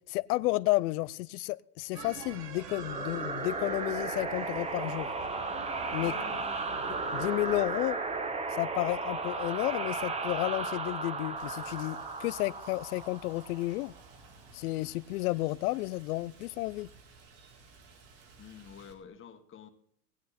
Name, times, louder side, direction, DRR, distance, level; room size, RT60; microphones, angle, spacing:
voice 1, 0.1-5.1 5.9-6.1 7.1-8.0 8.5-13.9 14.5-16.9, left 19 dB, 65° left, 0.7 m, -32 dB
sound 1, 1.9-7.6, right 7 dB, 75° right, 2.1 m, -47 dB
sound 2, 2.7-14.0, right 3 dB, 15° right, 0.8 m, -35 dB
voice 2, 6.0-6.9 18.4-19.7, left 7 dB, 25° left, 1.8 m, -49 dB
Rain, 11.4-18.9, right 4 dB, 60° right, 4.1 m, -56 dB
19.0 x 9.2 x 4.2 m
supercardioid pair, 125°, 48 cm